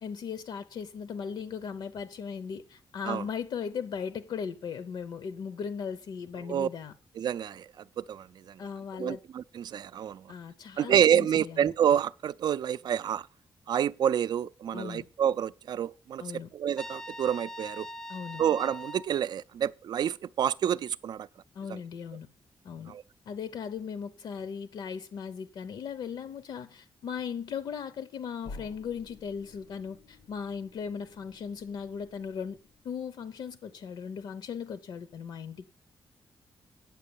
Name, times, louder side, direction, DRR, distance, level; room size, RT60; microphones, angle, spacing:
voice 1, 0.0-6.9 8.6-9.2 10.3-11.7 14.7-15.1 16.2-16.5 18.1-18.4 21.5-22.3 22.6-23.0 23.3-32.6 32.8-35.6, left 6 dB, 70° left, 0.7 m, -38 dB
voice 2, 7.2-7.7 8.0-8.6 9.0-10.3 10.8-13.3 13.7-17.9 18.4-21.3 21.7-21.8 22.9-23.0, right 9 dB, 60° right, 0.4 m, -28 dB
Trumpet, 16.8-19.1, equal, 5° left, 0.6 m, -42 dB
sound 1, 28.4-33.1, left 3 dB, 90° left, 1.4 m, -51 dB
9.0 x 7.4 x 7.0 m
wide cardioid pair, 175°, 8 cm